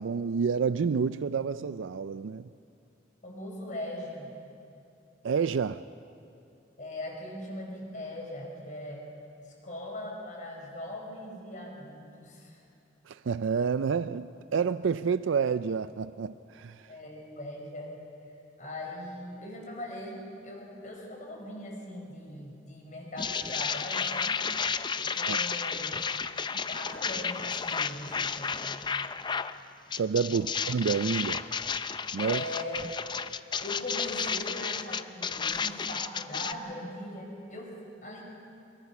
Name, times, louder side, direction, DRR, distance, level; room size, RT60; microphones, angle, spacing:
voice 1, 0.0-2.5 5.2-5.9 13.1-16.9 25.2-25.4 30.0-31.4 32.1-32.4, right 6 dB, 85° right, 13 dB, 0.4 m, -29 dB
voice 2, 3.2-4.3 6.8-9.1 9.4-12.6 16.9-18.0 18.6-24.4 24.9-25.9 26.7-28.6 30.3-30.5 32.2-32.9 33.6-38.2, left 1 dB, 40° left, 0 dB, 4.9 m, -40 dB
sound 1, 23.2-29.5 29.9-36.5, left 6 dB, 25° left, 0.5 m, -32 dB
24.5 x 22.0 x 6.0 m, 2.6 s
head